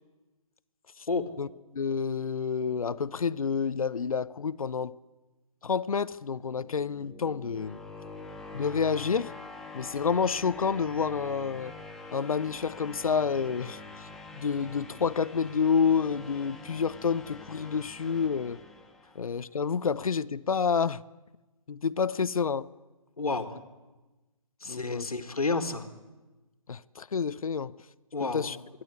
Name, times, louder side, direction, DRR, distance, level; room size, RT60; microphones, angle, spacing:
voice 1, 1.7-4.9 5.6-7.8 8.5-9.3 9.7-11.7 12.1-14.1 14.3-18.6 19.1-21.0 21.7-22.7 24.7-25.0 26.7-27.7 28.2-28.6, left 6 dB, 75° left, 0.8 m, -29 dB
sound 1, 6.4-19.4, left 3 dB, ahead, 0.8 m, -45 dB
voice 2, 23.2-23.5 24.6-25.9 28.1-28.5, left 3 dB, 90° left, 2.0 m, -30 dB
26.5 x 11.5 x 9.6 m
figure-of-eight pair, 155°, 18 cm